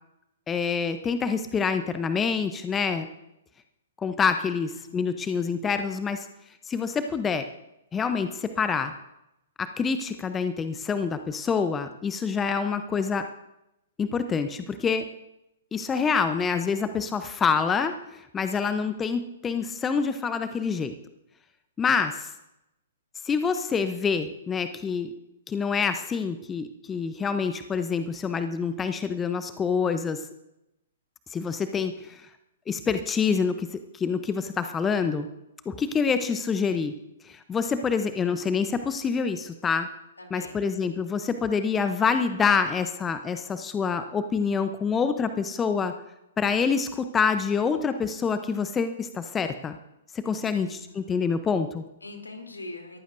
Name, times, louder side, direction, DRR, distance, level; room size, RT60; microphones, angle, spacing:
voice 1, 0.5-3.1 4.0-6.3 6.7-7.4 7.9-8.9 9.6-13.3 14.0-15.1 15.7-21.0 21.8-22.3 23.2-25.1 25.5-30.2 31.3-32.2 32.7-33.7 33.9-35.3 35.7-37.0 37.2-39.9 40.3-45.9 46.4-49.8 50.1-51.8, left 5 dB, 15° left, 9 dB, 0.8 m, -26 dB
voice 2, 18.5-18.8 40.2-40.6 50.3-51.2 52.0-53.0, left 2 dB, 80° left, 4 dB, 3.1 m, -43 dB
22.0 x 14.5 x 2.6 m, 0.88 s
figure-of-eight pair, 115°, 0 cm